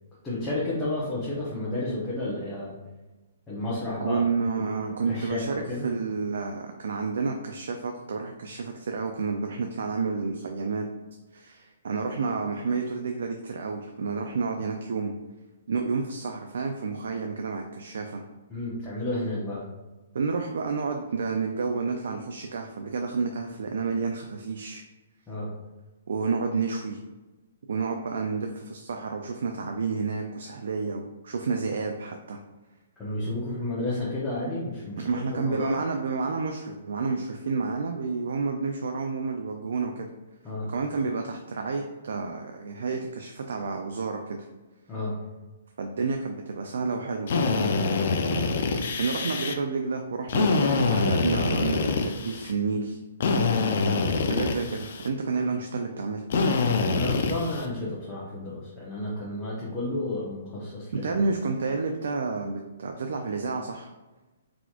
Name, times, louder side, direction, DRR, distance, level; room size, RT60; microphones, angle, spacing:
voice 1, 0.2-2.7 3.5-4.2 4.6-5.9 18.5-19.6 25.3-25.5 33.0-35.8 40.4-40.7 44.9-45.2 54.2-54.5 57.0-61.1, left 2 dB, 10° left, -9 dB, 0.8 m, -32 dB
voice 2, 4.0-10.9 11.3-15.1 15.7-18.2 20.1-24.8 26.1-27.0 27.7-32.4 35.0-40.1 40.7-44.5 45.8-47.3 48.3-48.5 49.0-53.0 54.3-56.2 60.9-63.9, right 4 dB, 75° right, 4 dB, 0.4 m, -30 dB
Drill, 47.3-49.5 50.3-52.5 53.2-55.1 56.3-57.7, left 4 dB, 55° left, 0.4 m, -25 dB
4.0 x 2.9 x 2.4 m, 1.2 s
hypercardioid pair, 155°, 0 cm